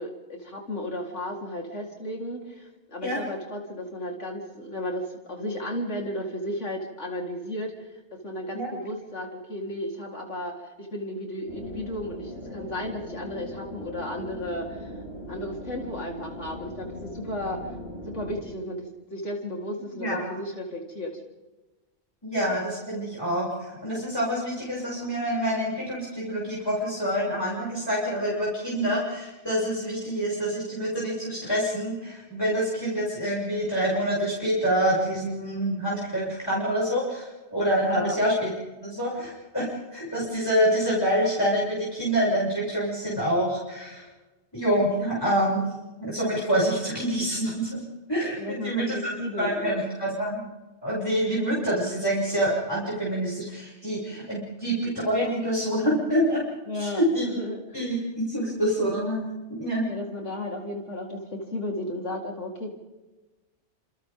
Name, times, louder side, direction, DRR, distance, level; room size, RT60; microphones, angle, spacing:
voice 1, 0.0-15.0 15.3-17.8 18.1-21.2 37.9-38.2 48.4-49.7 56.7-57.8 59.9-62.7, left 1 dB, 90° left, 0 dB, 4.4 m, -34 dB
sound 1, 11.5-18.4, left 1 dB, 65° left, 6.0 m, -40 dB
voice 2, 19.9-20.4 22.2-38.5 38.8-39.7 39.9-44.1 44.5-45.7 46.0-47.8 48.1-50.4 50.8-56.4 56.8-57.3 57.7-59.3 59.6-60.0, equal, 20° left, -7 dB, 7.2 m, -26 dB
30.0 x 28.5 x 3.8 m, 1.2 s
omnidirectional pair, 1.2 m